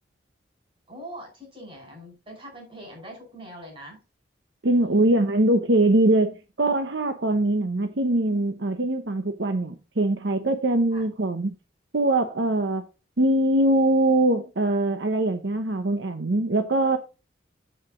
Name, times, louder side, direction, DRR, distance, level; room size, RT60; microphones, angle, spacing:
voice 1, 0.9-4.0 4.7-5.3 10.9-11.1, equal, 30° right, 5.3 m, -43 dB
voice 2, 4.6-11.5 11.9-12.8 13.2-17.0, right 1 dB, 70° right, 0.9 m, -22 dB
8.1 x 7.7 x 3.8 m
head